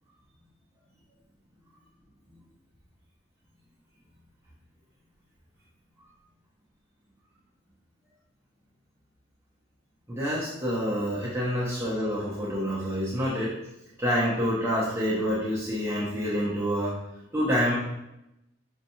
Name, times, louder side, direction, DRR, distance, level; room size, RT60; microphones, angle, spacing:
voice 1, 10.1-13.5 14.0-16.9 17.3-17.7, equal, 10° right, -9 dB, 0.8 m, -27 dB
5.3 x 2.9 x 2.7 m, 0.88 s
head